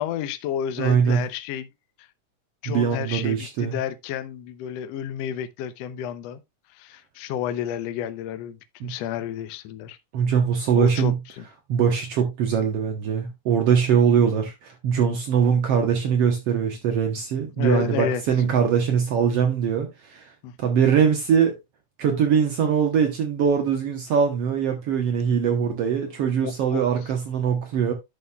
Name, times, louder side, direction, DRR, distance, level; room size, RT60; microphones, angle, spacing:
voice 1, 0.0-1.7 2.0-2.1 2.6-6.4 6.7-10.0 10.8-11.5 17.6-18.5 20.4-20.5 25.1-25.6 26.4-26.8, left 9 dB, 75° left, 1.5 m, -31 dB
voice 2, 0.8-1.2 2.7-3.7 8.8-8.9 10.1-11.1 11.7-20.3 20.6-21.5 22.0-27.9, right 7 dB, 65° right, 1.6 m, -22 dB
11.0 x 6.4 x 2.3 m
omnidirectional pair, 3.7 m